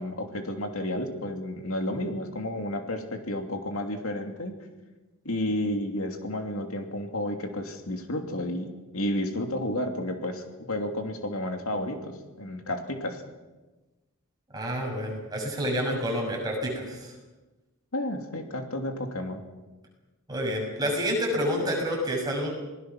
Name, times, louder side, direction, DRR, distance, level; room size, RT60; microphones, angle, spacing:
voice 1, 0.0-4.5 5.2-8.7 8.9-13.2 17.9-19.4, left 1 dB, 70° left, 4 dB, 2.8 m, -31 dB
voice 2, 14.5-17.1 20.3-22.5, equal, 15° right, -1 dB, 6.5 m, -28 dB
27.5 x 19.5 x 6.1 m, 1.1 s
head